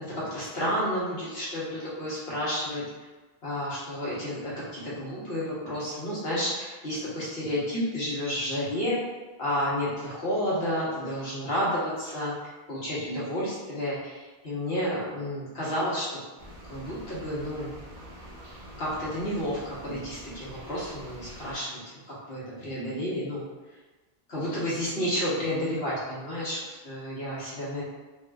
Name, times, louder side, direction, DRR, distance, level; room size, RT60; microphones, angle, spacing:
voice 1, 0.1-2.8 3.4-9.0 9.4-16.2 16.6-17.7 18.8-21.8 22.1-23.4 24.3-27.8, equal, 75° left, -8 dB, 1.4 m, -31 dB
sound 1, 16.4-21.6, equal, 40° right, 0.7 m, -46 dB
3.6 x 2.7 x 2.3 m, 1.2 s
omnidirectional pair, 1.0 m